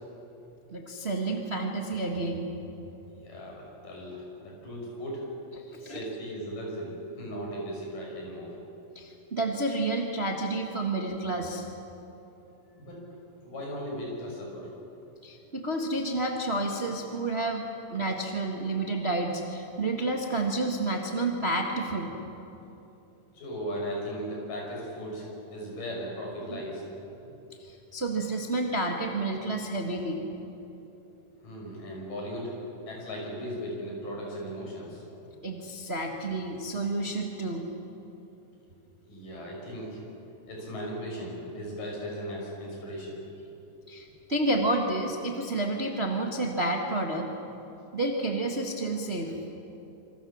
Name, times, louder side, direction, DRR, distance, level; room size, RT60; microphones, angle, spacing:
voice 1, 0.7-2.5 5.7-6.0 8.9-11.7 15.2-22.1 26.5-26.6 27.6-30.2 35.4-37.6 43.9-47.3 47.9-49.3, right 2 dB, 25° right, 1 dB, 1.3 m, -30 dB
voice 2, 3.2-5.4 5.8-8.6 12.8-13.0 13.4-14.7 23.3-26.8 31.4-32.5 32.9-35.0 39.0-40.0 40.5-43.2, equal, 70° left, -2 dB, 8.0 m, -37 dB
27.0 x 25.5 x 7.3 m, 3.0 s
omnidirectional pair, 4.0 m